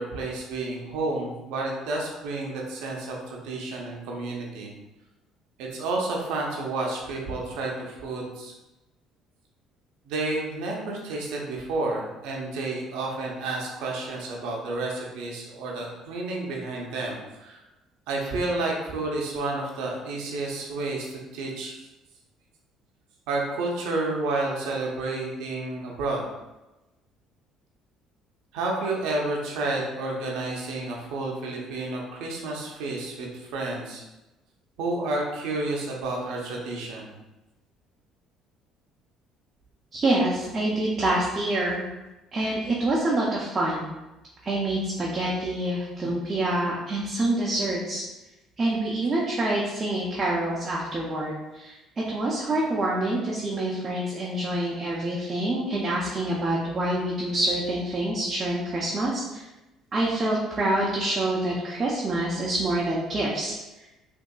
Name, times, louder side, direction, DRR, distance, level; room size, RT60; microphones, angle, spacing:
voice 1, 0.0-4.7 5.6-8.5 10.0-17.6 18.1-21.8 23.3-26.3 28.5-34.0 34.8-37.1, right 2 dB, 75° right, -1 dB, 0.7 m, -30 dB
voice 2, 39.9-41.8 42.3-43.9 44.4-48.0 48.6-59.5 59.9-63.9, right 1 dB, 35° right, -4 dB, 0.7 m, -26 dB
3.7 x 2.7 x 2.3 m, 1.0 s
hypercardioid pair, 60°, 0 cm